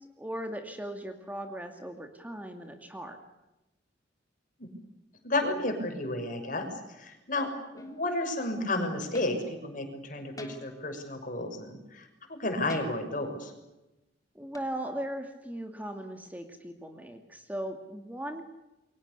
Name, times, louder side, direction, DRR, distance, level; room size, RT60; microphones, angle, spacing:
voice 1, 0.0-3.2 14.3-18.4, right 1 dB, 10° right, 5 dB, 2.3 m, -38 dB
voice 2, 5.2-13.5, left 2 dB, 50° left, 5 dB, 6.3 m, -32 dB
sound 1, 7.8-8.1 9.1-9.5 10.4-10.9 12.7-13.2 14.5-14.6, left 1 dB, 20° left, 3.4 m, -46 dB
29.0 x 23.5 x 6.9 m, 0.97 s
head